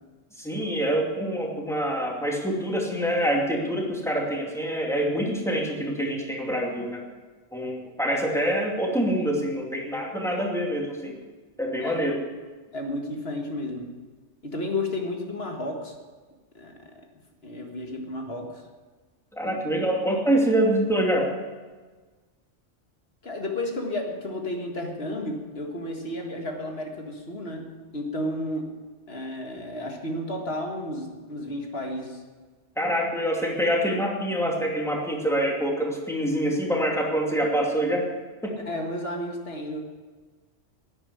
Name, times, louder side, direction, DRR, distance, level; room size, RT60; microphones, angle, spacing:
voice 1, 0.4-7.0 7.5-11.1 11.6-12.2 19.4-21.3 32.8-38.1 38.4-38.6, equal, ahead, -1 dB, 2.6 m, -25 dB
voice 2, 12.7-13.9 14.4-16.0 16.5-16.8 17.4-18.6 19.4-19.6 23.2-28.7 29.1-32.2 38.7-39.8, left 1 dB, 55° left, 2 dB, 2.1 m, -32 dB
11.5 x 9.9 x 9.6 m, 1.4 s
omnidirectional pair, 1.2 m